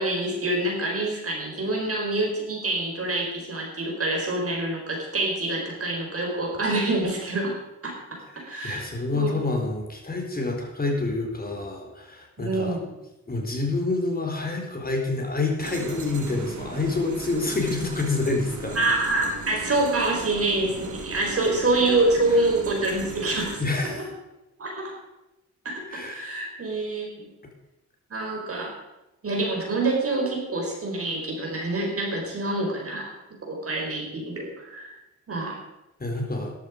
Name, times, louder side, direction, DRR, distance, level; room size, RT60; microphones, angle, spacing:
voice 1, 0.0-7.5 7.8-8.2 8.4-8.8 9.1-9.3 12.4-12.9 18.7-24.1 24.6-24.9 25.6-27.3 28.1-28.7 29.2-33.1 33.5-34.9 35.3-35.6, right 2 dB, 50° right, -1 dB, 5.0 m, -26 dB
voice 2, 8.3-12.8 13.3-18.8 23.6-24.0 25.9-26.2 36.0-36.5, left 3 dB, 30° left, 1 dB, 4.1 m, -27 dB
sound 1, 15.6-23.6, right 4 dB, 70° right, 2.0 m, -38 dB
13.5 x 11.5 x 5.1 m, 0.95 s
cardioid pair, 75°, 30 cm